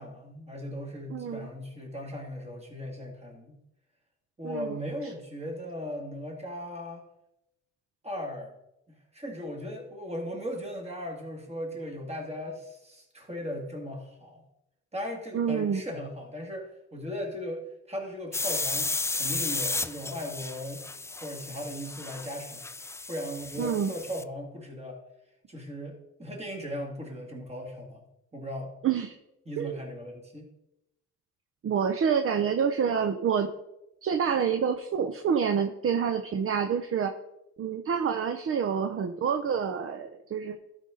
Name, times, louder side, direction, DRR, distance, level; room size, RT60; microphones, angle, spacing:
voice 1, 0.0-3.6 4.4-7.0 8.0-8.5 9.1-14.4 14.9-20.8 21.2-22.7 23.1-25.0 25.5-28.1 28.3-28.8 29.5-30.5, equal, 20° right, 1 dB, 2.6 m, -37 dB
voice 2, 1.1-1.5 4.4-4.8 15.3-15.8 23.6-23.9 28.8-29.1 29.6-29.8 31.6-33.5 34.0-37.1 37.6-40.6, right 7 dB, 45° right, 7 dB, 0.7 m, -27 dB
sound 1, 18.3-24.2, left 3 dB, 10° left, 0.3 m, -33 dB
12.5 x 5.3 x 3.9 m, 0.87 s
cardioid pair, 90°, 30 cm